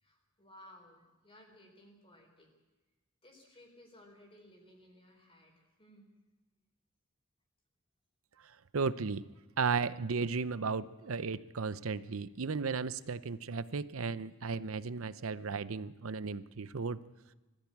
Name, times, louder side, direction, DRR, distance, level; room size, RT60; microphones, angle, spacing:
voice 1, 0.0-2.5 3.2-6.1, left 1 dB, 25° left, 1 dB, 4.2 m, -58 dB
voice 2, 8.7-9.2 9.6-17.0, right 4 dB, 75° right, 15 dB, 0.7 m, -35 dB
21.0 x 14.0 x 8.7 m, 1.2 s
head